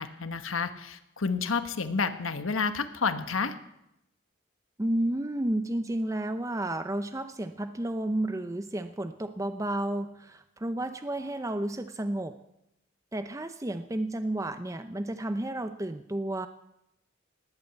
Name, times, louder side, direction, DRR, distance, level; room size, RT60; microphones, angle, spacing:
voice 1, 0.0-3.5, left 5 dB, 85° left, 10 dB, 1.2 m, -30 dB
voice 2, 4.8-12.4 13.1-16.5, right 1 dB, 15° right, 9 dB, 0.6 m, -31 dB
19.0 x 8.7 x 8.2 m, 0.84 s
head